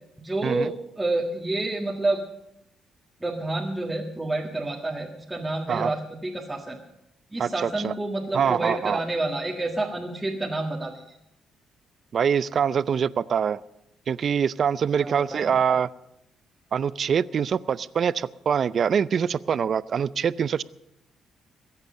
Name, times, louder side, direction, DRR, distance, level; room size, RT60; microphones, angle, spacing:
voice 1, 0.2-2.2 3.2-6.8 7.3-11.2 15.0-15.6, right 2 dB, 10° right, -2 dB, 1.8 m, -29 dB
voice 2, 7.4-7.9 8.3-9.0 12.1-13.6 14.1-15.9 16.7-20.6, right 7 dB, 50° right, 18 dB, 0.5 m, -24 dB
22.0 x 8.2 x 6.5 m, 0.83 s
cardioid pair, 90°, 0 cm